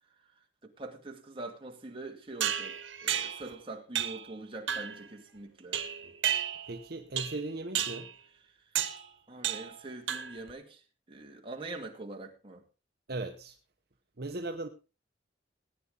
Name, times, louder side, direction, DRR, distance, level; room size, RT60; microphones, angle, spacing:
voice 1, 0.6-5.8 9.3-10.8 11.1-12.6, right 2 dB, 30° right, 2 dB, 2.3 m, -44 dB
sound 1, 2.4-3.5 4.0-4.3 4.7-5.0 5.7-6.8 7.2-7.5 7.8-8.1 8.8-9.1 9.4-9.8 10.1-10.5, right 9 dB, 90° right, 1.3 m, -32 dB
voice 2, 6.4-8.1 13.1-13.6 14.2-14.7, right 2 dB, 55° right, 4 dB, 1.0 m, -38 dB
18.0 x 9.8 x 3.9 m, 0.31 s
head